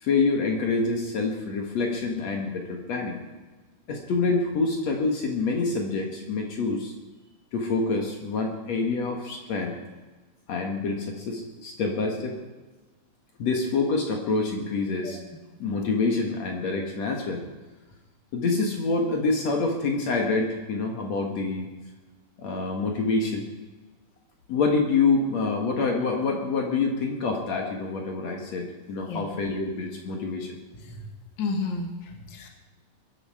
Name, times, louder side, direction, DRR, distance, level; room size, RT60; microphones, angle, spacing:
voice 1, 0.0-3.2 3.9-6.9 7.5-9.8 10.5-12.4 13.4-15.2 15.6-17.4 18.3-21.7 22.4-23.5 24.5-30.6, left 3 dB, 60° left, 1 dB, 2.7 m, -26 dB
voice 2, 31.4-32.5, left 3 dB, 40° left, 2 dB, 2.3 m, -32 dB
22.5 x 10.0 x 4.9 m, 1.2 s
omnidirectional pair, 3.6 m